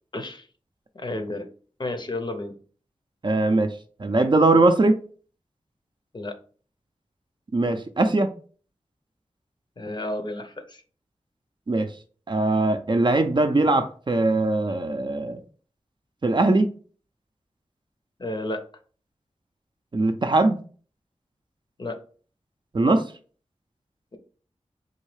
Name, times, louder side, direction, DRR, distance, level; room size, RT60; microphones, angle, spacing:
voice 1, 0.1-0.5 0.9-1.5 1.8-2.5 6.1-6.3 9.8-10.8 18.2-18.6 21.8-22.0, left 1 dB, 40° left, 0.6 m, -31 dB
voice 2, 3.2-3.7 4.0-4.9 7.5-8.3 11.7-11.9 12.3-15.4 16.2-16.7 19.9-20.6 22.7-23.0, right 2 dB, 40° right, 0.5 m, -21 dB
3.9 x 2.7 x 3.2 m
wide cardioid pair, 75°, 12 cm